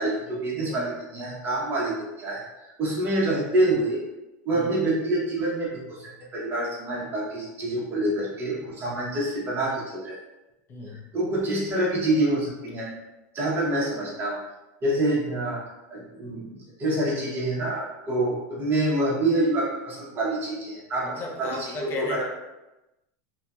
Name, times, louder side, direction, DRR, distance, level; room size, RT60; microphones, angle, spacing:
voice 1, 0.0-4.0 4.4-10.2 10.9-12.9 13.3-14.4 14.8-22.2, right 1 dB, 25° right, -5 dB, 0.9 m, -27 dB
voice 2, 10.7-11.1 21.0-22.2, left 2 dB, 25° left, 0 dB, 0.5 m, -35 dB
2.7 x 2.7 x 2.3 m, 0.99 s
supercardioid pair, 145°, 8 cm